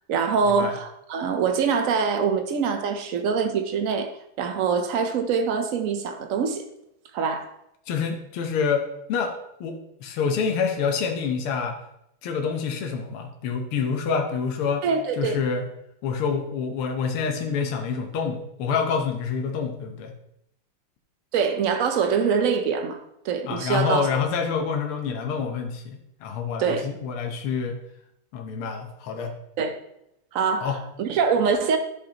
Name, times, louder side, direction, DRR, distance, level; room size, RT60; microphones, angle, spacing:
voice 1, 0.1-4.1 4.4-6.6 7.1-7.5 14.8-15.4 21.3-23.0 23.2-24.1 26.6-26.9 29.6-29.8 30.3-31.8, right 6 dB, 75° right, 0.7 m, -24 dB
voice 2, 7.9-11.8 12.2-14.9 15.2-15.7 16.0-20.1 23.5-27.8 28.3-29.3 30.6-30.8, left 6 dB, 85° left, 1.8 m, -27 dB
10.5 x 6.6 x 2.9 m
omnidirectional pair, 2.3 m